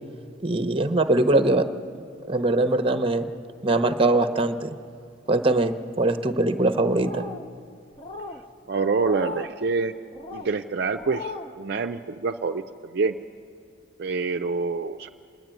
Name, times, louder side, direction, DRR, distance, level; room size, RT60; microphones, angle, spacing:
voice 1, 0.4-1.7 2.3-3.3 3.6-4.7 5.3-5.7 6.0-7.2, right 2 dB, 25° right, 9 dB, 0.8 m, -21 dB
sound 1, 6.9-7.5 8.0-8.4 9.0-9.5 10.1-10.5 10.9-11.5, left 3 dB, 25° left, 0.9 m, -37 dB
voice 2, 8.7-9.9 10.3-13.2 14.0-15.1, right 4 dB, 55° right, 5 dB, 0.5 m, -26 dB
27.0 x 11.0 x 9.0 m, 2.3 s
head